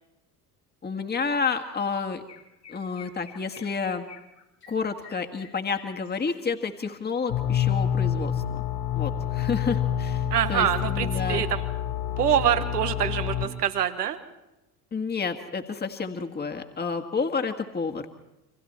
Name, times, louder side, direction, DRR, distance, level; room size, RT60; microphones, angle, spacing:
voice 1, 0.8-2.2 2.7-4.0 4.7-8.6 8.9-10.2 10.5-11.4 14.9-18.0, left 5 dB, 20° left, 5 dB, 1.8 m, -30 dB
Chirp tweet, 1.5-1.7 1.9-6.5, left 7 dB, 85° left, 3.1 m, -50 dB
sound 1, 7.3-13.5, left 9 dB, 55° left, 3.5 m, -27 dB
voice 2, 10.3-11.7 12.2-14.2, right 10 dB, 80° right, 11 dB, 1.4 m, -25 dB
29.5 x 25.0 x 4.4 m, 0.96 s
figure-of-eight pair, 65°, 46 cm